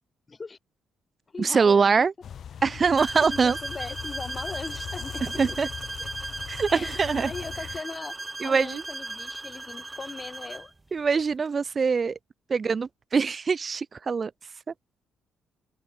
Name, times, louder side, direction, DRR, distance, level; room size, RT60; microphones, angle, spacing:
voice 1, 0.3-0.6 1.3-1.9 3.2-5.2 5.5-5.6 6.7-8.1 8.4-10.7, left 4 dB, 35° left, 3.9 m, -39 dB
voice 2, 1.4-2.1 2.6-3.6 5.4-5.7 6.5-7.3 8.4-8.8 10.9-12.2 12.5-14.3, right 5 dB, 40° right, 0.5 m, -23 dB
sound 1, 2.2-7.8, left 8 dB, 60° left, 1.1 m, -40 dB
sound 2, 3.0-10.7, right 2 dB, 20° right, 1.1 m, -37 dB
open air
hypercardioid pair, 55°, 0 cm